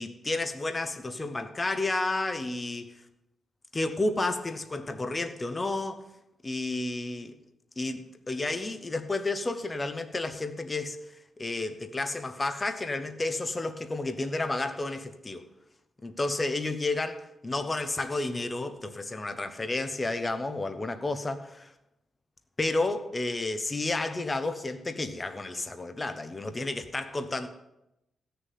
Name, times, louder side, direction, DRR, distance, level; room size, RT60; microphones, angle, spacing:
voice 1, 0.0-2.9 3.7-6.1 6.4-7.3 7.8-11.0 11.4-15.4 16.0-21.7 22.6-27.5, left 2 dB, 20° left, 8 dB, 1.0 m, -31 dB
16.5 x 6.8 x 9.3 m, 0.88 s
wide cardioid pair, 170°, 0 cm